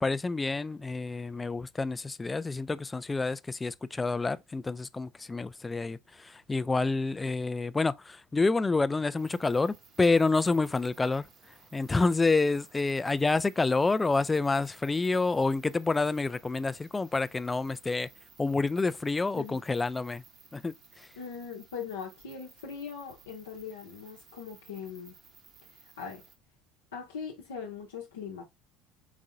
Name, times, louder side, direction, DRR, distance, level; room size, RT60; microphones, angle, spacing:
voice 1, 0.0-11.3 11.7-18.1 18.4-20.2 20.5-21.1, left 3 dB, 20° left, 0.3 m, -28 dB
sound 1, 9.2-26.4, right 5 dB, 45° right, 1.0 m, -58 dB
voice 2, 21.2-25.1 25.7-26.2 26.9-28.4, left 6 dB, 80° left, 0.8 m, -41 dB
4.1 x 3.6 x 2.5 m
hypercardioid pair, 65°, 0 cm